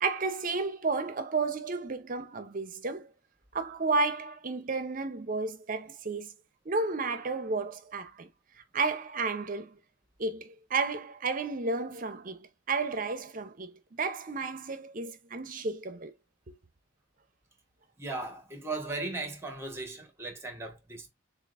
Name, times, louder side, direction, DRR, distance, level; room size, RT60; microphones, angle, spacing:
voice 1, 0.0-3.1 3.5-6.3 6.7-8.3 8.7-9.7 10.2-16.1 16.5-16.6, right 3 dB, 45° right, 0.6 m, -32 dB
voice 2, 18.0-21.1, right 2 dB, 15° right, 1.1 m, -37 dB
6.9 x 2.5 x 2.5 m
head